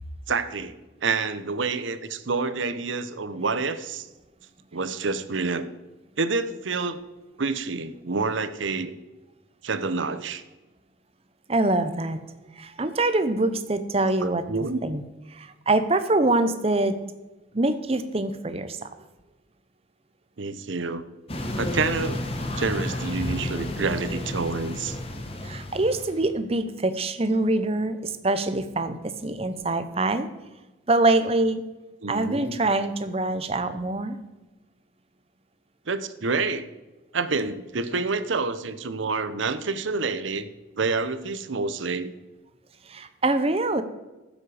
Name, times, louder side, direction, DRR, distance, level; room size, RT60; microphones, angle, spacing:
voice 1, 0.3-0.7 1.0-4.1 4.7-5.7 6.2-7.0 7.4-8.9 9.6-10.4 14.0-14.8 20.4-21.1 21.6-22.2 22.6-25.0 32.0-32.6 35.9-36.7 37.1-40.5 40.8-42.1, right 4 dB, 75° right, 12 dB, 0.8 m, -28 dB
voice 2, 11.5-12.2 12.6-14.4 14.8-15.0 15.3-17.0 17.5-18.9 25.4-30.3 30.9-31.6 32.1-34.2 42.9-43.8, right 2 dB, 30° right, 11 dB, 0.7 m, -24 dB
sound 1, 21.3-26.3, left 1 dB, 30° left, 1.1 m, -31 dB
14.5 x 7.5 x 4.9 m, 1.1 s
head